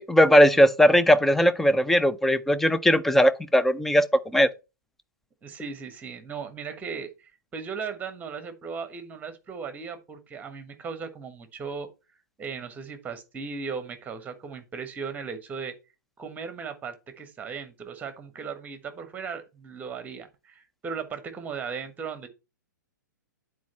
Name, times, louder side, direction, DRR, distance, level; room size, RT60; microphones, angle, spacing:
voice 1, 0.0-4.5, equal, 5° left, 0.5 m, -19 dB
voice 2, 5.4-7.1 7.5-11.9 12.4-15.7 16.2-22.3, right 5 dB, 15° right, 1.4 m, -37 dB
9.4 x 4.4 x 4.3 m
figure-of-eight pair, 115°, 10 cm